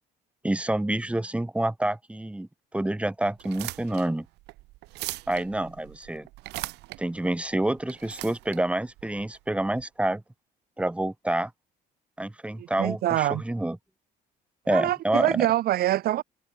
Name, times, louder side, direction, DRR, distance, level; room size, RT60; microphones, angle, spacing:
voice 1, 0.4-4.3 5.3-6.3 7.0-10.2 10.8-11.5 12.2-13.8 14.7-15.5, right 1 dB, 5° right, 2.8 m, -28 dB
sound 1, 3.3-9.8, right 20 dB, 85° right, 1.1 m, -40 dB
voice 2, 12.6-13.4 14.7-16.2, right 14 dB, 65° right, 0.9 m, -25 dB
cardioid pair, 110°, 17 cm